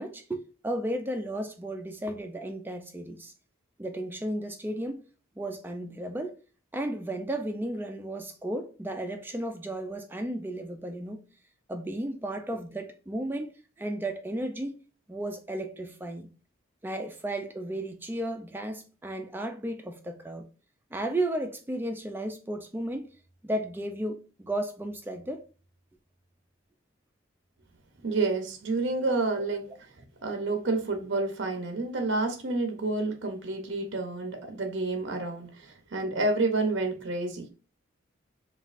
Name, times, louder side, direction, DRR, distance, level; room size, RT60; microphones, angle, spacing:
voice 1, 0.0-3.3 3.8-5.0 5.4-6.3 6.7-11.2 11.7-13.5 13.8-14.8 15.1-16.3 16.8-20.4 20.9-23.1 23.4-25.4, right 1 dB, 10° right, 0.3 m, -34 dB
voice 2, 28.0-29.9 30.2-37.5, right 3 dB, 60° right, 0.6 m, -29 dB
5.3 x 2.4 x 2.4 m
head